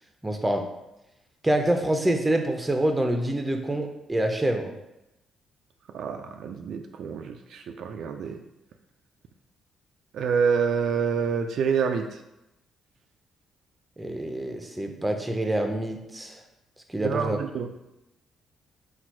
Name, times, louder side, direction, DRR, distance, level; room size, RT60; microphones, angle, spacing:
voice 1, 0.2-0.6 1.4-4.7 14.0-16.4 16.9-17.4, right 1 dB, 10° right, 4 dB, 0.6 m, -26 dB
voice 2, 5.9-8.4 10.1-12.2 17.0-17.7, right 6 dB, 70° right, 5 dB, 0.3 m, -27 dB
4.2 x 2.4 x 4.5 m, 0.91 s
cardioid pair, 90°, 0 cm